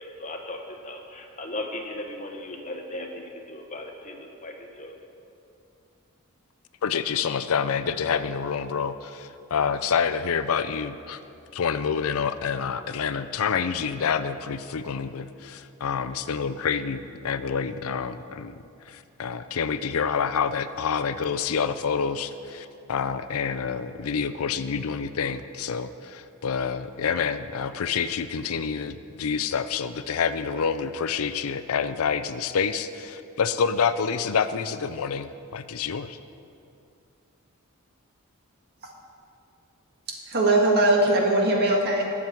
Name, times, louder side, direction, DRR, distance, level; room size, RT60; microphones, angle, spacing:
voice 1, 0.0-5.0, left 1 dB, 35° left, 2 dB, 1.2 m, -37 dB
voice 2, 6.8-11.2 11.5-18.5 18.9-36.2, left 6 dB, 75° left, 11 dB, 0.5 m, -27 dB
voice 3, 40.1-42.1, right 2 dB, 45° right, 0 dB, 1.8 m, -21 dB
20.5 x 7.2 x 4.6 m, 2.6 s
head